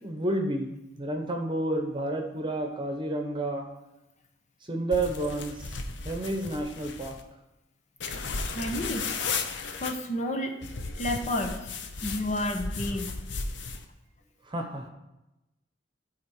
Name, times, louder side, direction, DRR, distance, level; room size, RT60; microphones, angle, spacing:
voice 1, 0.0-3.7 4.7-5.8 6.0-7.2 14.5-14.9, right 1 dB, 25° right, 4 dB, 1.0 m, -30 dB
sound 1, 4.9-7.2 8.0-9.9 10.6-13.8, left 4 dB, 70° left, 0.8 m, -35 dB
voice 2, 8.5-9.1 9.8-10.6 11.0-11.7 12.0-13.2, left 1 dB, 40° left, 4 dB, 0.9 m, -31 dB
12.0 x 4.4 x 4.8 m, 0.96 s
head